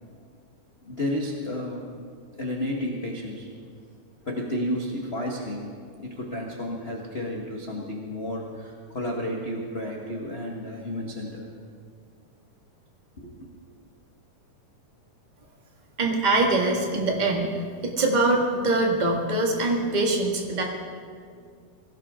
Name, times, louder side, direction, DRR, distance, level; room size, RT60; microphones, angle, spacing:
voice 1, 0.8-1.9 2.4-3.5 4.2-5.7 6.0-11.5 13.2-13.3, left 1 dB, 50° left, -1 dB, 0.7 m, -31 dB
voice 2, 16.0-20.6, right 2 dB, 20° right, 0 dB, 1.1 m, -23 dB
22.5 x 17.0 x 3.7 m, 2.1 s
omnidirectional pair, 3.7 m